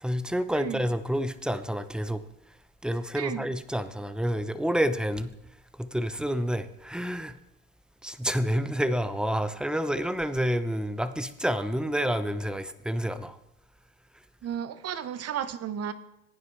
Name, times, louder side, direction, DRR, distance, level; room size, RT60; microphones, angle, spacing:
voice 1, 0.0-2.2 2.8-5.3 5.9-7.3 8.0-13.4, equal, 5° right, 0.8 m, -28 dB
voice 2, 3.1-3.5 14.4-15.9, right 9 dB, 50° right, 1.0 m, -33 dB
16.0 x 9.5 x 3.3 m
supercardioid pair, 70°, 31 cm